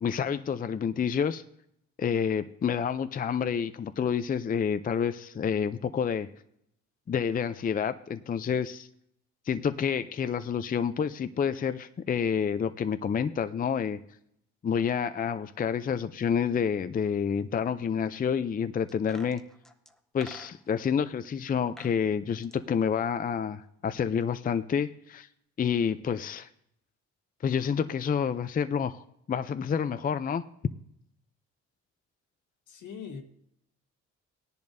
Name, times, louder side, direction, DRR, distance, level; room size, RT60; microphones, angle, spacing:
voice 1, 0.0-1.4 2.0-6.3 7.1-8.9 9.5-14.0 14.6-19.4 20.1-25.3 25.6-26.5 27.4-29.0 29.3-30.4, left 7 dB, 30° left, 11 dB, 0.5 m, -28 dB
sound 1, 18.9-20.9 21.5-22.0 22.3-23.6 23.9-24.0, equal, ahead, 0.9 m, -50 dB
voice 2, 32.7-33.2, left 6 dB, 75° left, 5 dB, 1.6 m, -41 dB
17.5 x 10.5 x 2.7 m, 0.74 s
cardioid pair, 90°, 30 cm